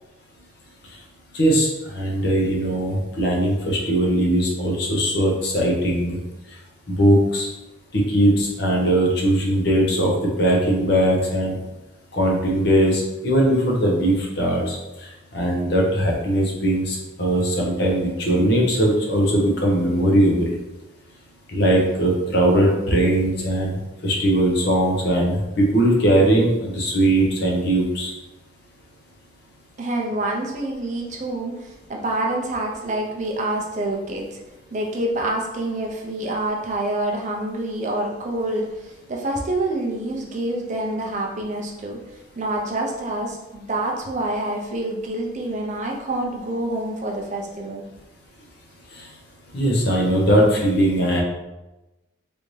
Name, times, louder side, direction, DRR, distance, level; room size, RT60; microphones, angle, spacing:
voice 1, 1.3-6.2 6.9-7.5 7.9-10.1 10.4-11.6 12.1-14.8 15.3-20.5 21.5-23.7 24.0-28.1 49.5-51.2, right 1 dB, 55° left, -2 dB, 0.7 m, -20 dB
voice 2, 29.8-34.4 34.7-42.0 42.4-47.8, right 1 dB, 35° right, 0 dB, 0.5 m, -27 dB
3.3 x 2.6 x 3.1 m, 1.0 s
head